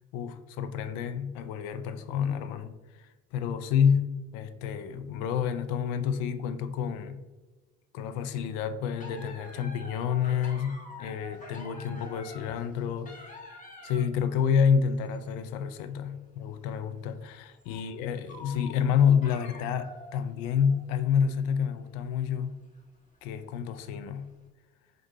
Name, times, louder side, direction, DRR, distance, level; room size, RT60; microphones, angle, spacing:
voice 1, 0.1-2.7 3.3-7.2 7.9-13.4 13.8-22.6 23.2-24.3, left 7 dB, 70° left, 10 dB, 0.5 m, -28 dB
sound 1, 9.0-14.2 14.9-15.4 15.9-16.0 16.5-16.6 17.6-17.9 18.3-21.0 21.4-21.5 22.5-22.8 23.6-23.8 24.2-24.3, left 2 dB, 20° left, 1.0 m, -47 dB
4.5 x 2.5 x 2.7 m, 1.2 s
hypercardioid pair, 65°, 37 cm